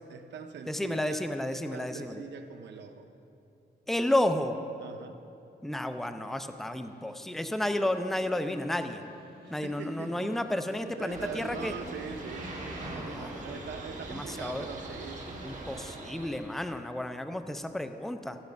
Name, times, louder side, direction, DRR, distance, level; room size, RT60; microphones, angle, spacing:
voice 1, 0.1-3.1 4.8-5.2 9.4-10.4 10.8-15.5, right 5 dB, 90° right, 6 dB, 0.7 m, -42 dB
voice 2, 0.7-2.2 3.9-4.6 5.6-9.0 9.5-11.7 12.8-13.4 14.1-14.7 15.4-18.4, left 1 dB, ahead, 8 dB, 0.4 m, -32 dB
Snare drum, 5.9-13.3, equal, 60° left, 1.8 m, -51 dB
sound 1, 11.1-16.5, right 2 dB, 45° right, 1.6 m, -42 dB
13.0 x 6.5 x 5.2 m, 2.8 s
wide cardioid pair, 115°, 18 cm